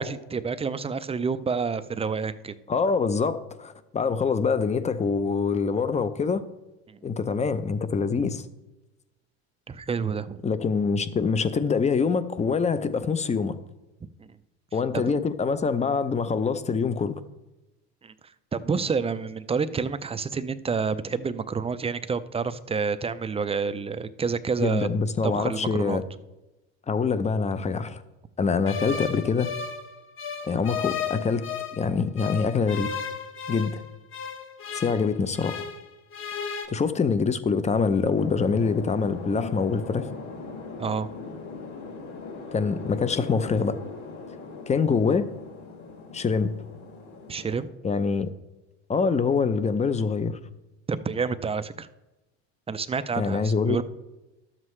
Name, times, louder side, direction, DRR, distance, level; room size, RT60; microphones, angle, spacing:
voice 1, 0.0-2.6 6.9-7.1 9.7-10.4 14.2-14.4 14.9-15.1 18.0-18.1 18.5-24.9 25.2-26.0 40.8-41.1 47.3-47.7 50.9-51.9 52.7-53.8, right 5 dB, 20° right, 13 dB, 0.5 m, -29 dB
voice 2, 2.7-6.4 7.0-8.4 10.4-13.6 14.7-17.2 24.6-26.0 26.9-28.0 28.4-29.5 30.4-31.5 31.7-32.9 33.5-33.8 34.7-35.6 36.7-40.1 42.5-43.8 44.7-45.3 46.1-46.5 47.8-48.3 48.9-50.4 53.2-53.8, left 5 dB, 20° left, 13 dB, 0.6 m, -25 dB
sound 1, 28.7-31.8 32.2-35.8 36.1-36.7, left 7 dB, 40° left, 1.2 m, -34 dB
sound 2, 38.1-47.6, left 4 dB, 55° left, 2.9 m, -40 dB
12.0 x 7.5 x 3.2 m, 1.0 s
supercardioid pair, 95°, 33 cm